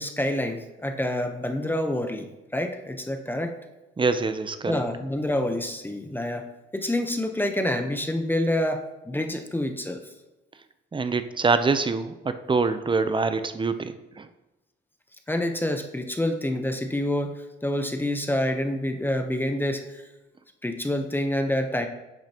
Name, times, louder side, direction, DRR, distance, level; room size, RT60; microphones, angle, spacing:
voice 1, 0.0-3.5 4.6-6.5 6.7-10.0 15.3-17.3 17.6-20.0 20.6-21.9, left 1 dB, 10° left, 5 dB, 0.9 m, -27 dB
voice 2, 4.0-4.8 10.9-14.3, right 4 dB, 25° right, 10 dB, 0.6 m, -25 dB
10.0 x 7.3 x 2.9 m, 1.0 s
cardioid pair, 90°, 20 cm